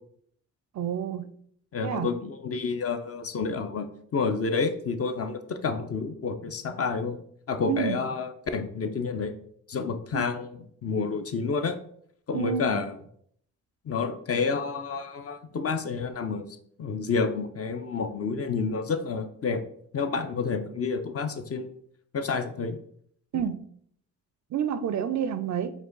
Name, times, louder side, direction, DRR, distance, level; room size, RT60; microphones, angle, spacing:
voice 1, 0.7-1.3 1.8-2.1 7.7-8.0 10.1-10.3 12.3-12.8 23.3-23.6 24.5-25.7, right 8 dB, 50° right, 12 dB, 0.4 m, -29 dB
voice 2, 1.7-3.9 4.1-7.2 7.5-9.3 9.7-11.8 12.3-13.0 13.9-16.4 16.8-19.6 19.9-21.7 22.1-22.8, left 4 dB, 40° left, 8 dB, 0.6 m, -29 dB
4.6 x 2.3 x 3.9 m, 0.65 s
supercardioid pair, 60°, 38 cm